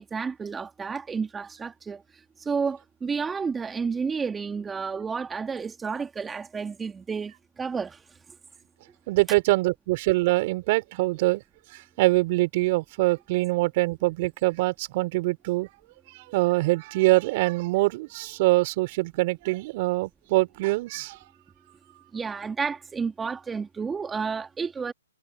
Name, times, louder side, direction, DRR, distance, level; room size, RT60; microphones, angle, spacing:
voice 1, 0.0-8.0 22.1-24.9, right 5 dB, 10° right, 2.4 m, -31 dB
voice 2, 9.1-11.4 11.7-15.7 16.1-21.2, right 21 dB, 40° right, 3.2 m, -24 dB
hypercardioid pair, 135°, 0 cm